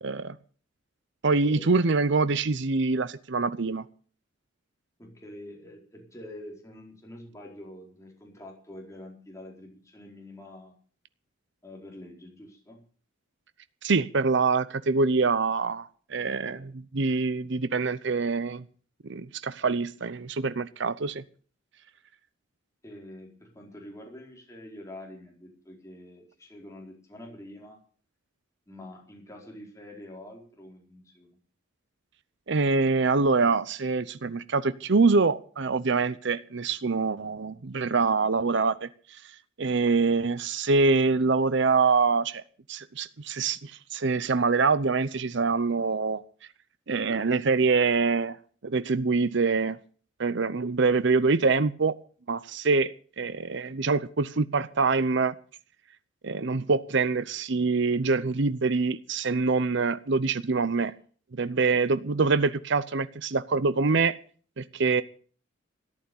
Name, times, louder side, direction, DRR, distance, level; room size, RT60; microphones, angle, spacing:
voice 1, 0.0-0.4 1.2-3.8 13.8-18.6 19.1-21.2 32.5-39.2 39.6-42.4 42.7-46.2 46.9-48.4 48.6-49.8 50.2-52.0 52.3-55.3 56.2-60.9 61.3-64.2 64.6-65.0, right 4 dB, 60° right, 0.7 m, -25 dB
voice 2, 5.0-10.7 11.6-12.8 16.1-16.7 22.8-27.8 28.7-31.4, left 1 dB, 15° left, 4.5 m, -46 dB
14.5 x 11.5 x 7.1 m
head